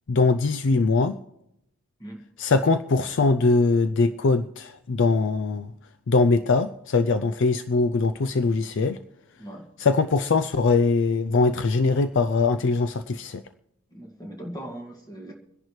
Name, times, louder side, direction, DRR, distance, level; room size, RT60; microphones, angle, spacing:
voice 1, 0.1-1.2 2.4-5.7 6.1-9.0 9.8-13.4, left 3 dB, 55° left, 11 dB, 0.4 m, -22 dB
voice 2, 13.9-15.3, right 1 dB, 15° left, 1 dB, 1.9 m, -39 dB
26.0 x 10.5 x 3.2 m, 0.81 s
head